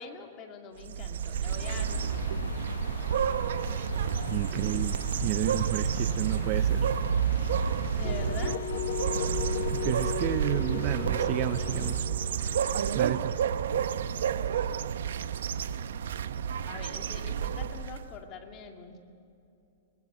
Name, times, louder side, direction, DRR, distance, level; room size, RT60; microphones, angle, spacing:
voice 1, 0.0-2.3 8.0-8.6 16.6-19.0, left 5 dB, 25° left, 3 dB, 2.1 m, -43 dB
sound 1, 0.8-18.1, right 8 dB, 80° right, 0.9 m, -30 dB
sound 2, 1.6-12.0, left 8 dB, 80° left, 0.8 m, -40 dB
voice 2, 4.3-6.9 9.7-12.1 12.9-13.3, right 14 dB, 30° right, 13 dB, 0.5 m, -31 dB
sound 3, 8.0-13.9, left 6 dB, 45° left, 2.3 m, -36 dB
21.5 x 20.0 x 7.9 m, 2.7 s
supercardioid pair, 170°, 0 cm